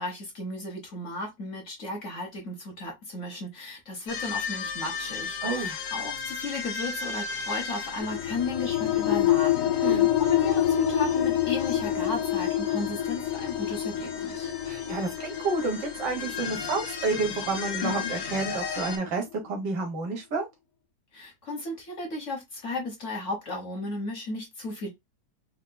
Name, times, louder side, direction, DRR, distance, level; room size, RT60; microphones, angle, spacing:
voice 1, 0.0-14.5 21.1-24.9, left 2 dB, 50° left, 1.4 m, -35 dB
sound 1, 4.1-19.0, left 6 dB, 90° left, 1.5 m, -36 dB
voice 2, 5.4-5.8 9.8-10.1 14.6-20.5, right 3 dB, 75° right, 1.8 m, -30 dB
sound 2, 8.0-19.2, left 11 dB, 70° left, 0.8 m, -27 dB
4.6 x 2.2 x 2.2 m
omnidirectional pair, 1.9 m